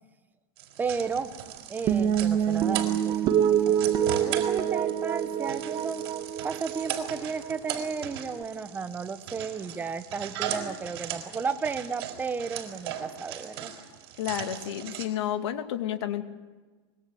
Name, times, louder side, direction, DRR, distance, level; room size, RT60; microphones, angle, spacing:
sound 1, 0.6-15.1, right 10 dB, 65° right, 4.9 m, -38 dB
voice 1, 0.8-1.3 1.7-6.0 6.4-13.7, right 5 dB, 15° right, 9 dB, 1.2 m, -34 dB
sound 2, 1.9-8.4, right 9 dB, 35° right, 1.6 m, -27 dB
voice 2, 14.2-16.2, left 11 dB, 80° left, 7 dB, 2.5 m, -31 dB
25.0 x 21.5 x 8.0 m, 1.3 s
supercardioid pair, 160°, 14 cm